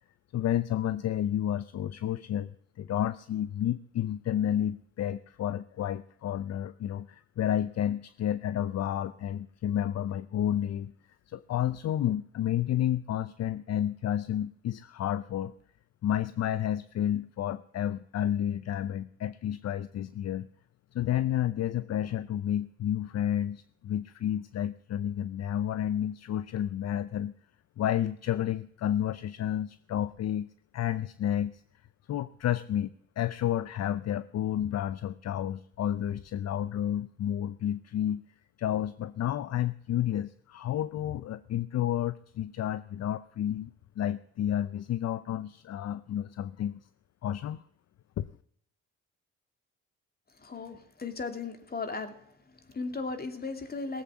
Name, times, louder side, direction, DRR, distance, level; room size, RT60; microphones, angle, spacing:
voice 1, 0.3-2.5 2.8-10.9 11.3-15.5 16.0-20.5 20.9-27.3 27.8-30.5 30.7-31.6 32.1-32.9 33.2-38.2 38.6-43.7 44.0-46.8 47.2-47.6 48.2-48.3, left 11 dB, 55° left, 15 dB, 0.6 m, -31 dB
voice 2, 50.4-52.2 52.5-54.0, left 4 dB, 30° left, 6 dB, 2.6 m, -36 dB
18.5 x 7.9 x 7.1 m, 0.68 s
cardioid pair, 90°, 30 cm